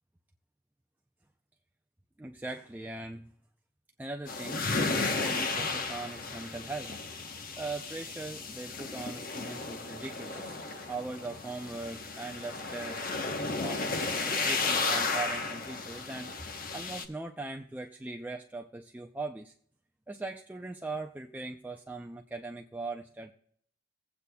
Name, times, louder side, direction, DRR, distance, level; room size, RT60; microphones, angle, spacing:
voice 1, 2.2-3.3 4.0-7.0 7.6-13.1 13.3-19.5 20.1-23.3, right 3 dB, 10° right, 2 dB, 0.4 m, -40 dB
sound 1, 4.3-17.1, left 3 dB, 50° left, 0.9 m, -34 dB
18.5 x 8.2 x 2.2 m, 0.62 s
head